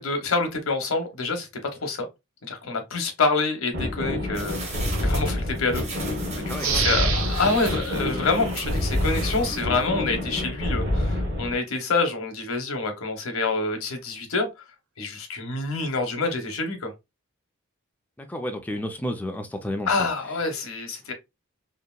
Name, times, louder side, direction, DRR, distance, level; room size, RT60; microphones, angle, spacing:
voice 1, 0.0-1.5 1.8-2.1 2.4-5.9 6.3-14.5 15.0-16.9 19.9-21.1, left 3 dB, 75° left, 0.8 m, -27 dB
sound 1, 3.7-11.6, left 1 dB, 55° right, 1.0 m, -27 dB
sound 2, 4.3-10.0 10.4-10.5, right 2 dB, 30° right, 0.8 m, -38 dB
voice 2, 6.5-6.9 18.2-20.1, left 1 dB, 10° left, 0.3 m, -31 dB
sound 3, 6.6-9.3 9.7-9.8, right 6 dB, 70° right, 0.5 m, -30 dB
2.8 x 2.5 x 2.2 m
head